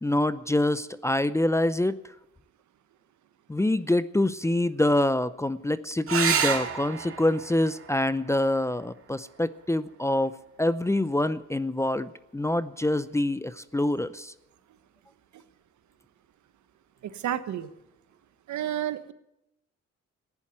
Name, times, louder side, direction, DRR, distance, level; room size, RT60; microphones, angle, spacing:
voice 1, 0.0-2.0 3.5-14.3, left 1 dB, 10° left, 15 dB, 0.6 m, -26 dB
sound 1, 6.1-11.1 13.0-13.6 17.1-17.2 17.5-17.6, right 7 dB, 50° right, 2.0 m, -32 dB
voice 2, 17.0-17.7 18.5-19.1, right 11 dB, 70° right, 12 dB, 1.2 m, -31 dB
14.5 x 10.5 x 9.2 m, 0.86 s
cardioid pair, 90°, 30 cm